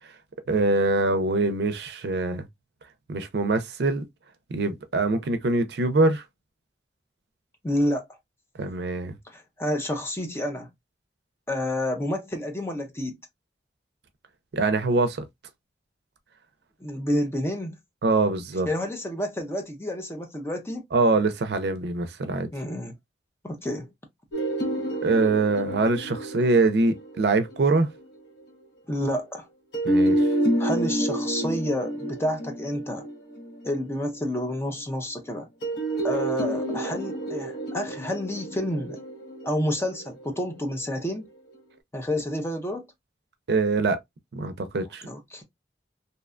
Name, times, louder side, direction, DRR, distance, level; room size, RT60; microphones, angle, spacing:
voice 1, 0.5-2.4 3.1-4.0 4.5-6.2 8.6-9.1 14.5-15.2 18.0-18.7 20.9-22.5 25.0-27.9 29.8-30.2 43.5-44.0 44.3-45.1, right 3 dB, 65° right, 0.5 m, -23 dB
voice 2, 7.6-8.1 9.3-10.7 11.5-13.2 16.8-17.8 18.7-20.8 22.5-22.9 23.4-23.9 28.9-29.5 30.6-33.1 33.6-35.5 36.0-39.0 39.4-41.3 41.9-42.9 45.0-45.4, left 1 dB, 15° left, 0.5 m, -29 dB
sound 1, 24.3-28.2 29.7-34.2 35.6-40.8, right 1 dB, 75° left, 1.0 m, -29 dB
2.7 x 2.2 x 2.3 m
head